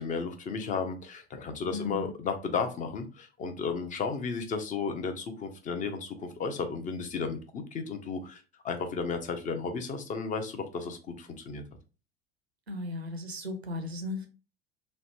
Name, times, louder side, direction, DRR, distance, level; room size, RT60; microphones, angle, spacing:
voice 1, 0.0-11.6, left 5 dB, 25° left, 0.5 m, -34 dB
voice 2, 1.7-2.1 12.7-14.3, left 2 dB, 90° right, 0.6 m, -36 dB
3.0 x 2.0 x 2.8 m
figure-of-eight pair, 75°, 31 cm